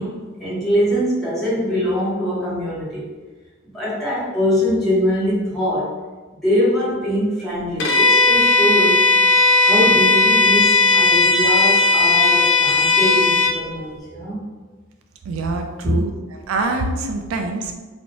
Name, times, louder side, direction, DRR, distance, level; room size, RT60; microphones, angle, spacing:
voice 1, 0.0-3.1 3.6-6.0 6.3-9.1 9.6-14.5 15.8-16.0, equal, ahead, -11 dB, 1.1 m, -22 dB
Bowed string instrument, 7.8-13.6, left 3 dB, 65° left, 0.4 m, -15 dB
voice 2, 15.3-17.8, right 3 dB, 80° right, 4 dB, 0.3 m, -25 dB
2.6 x 2.0 x 2.9 m, 1.3 s
head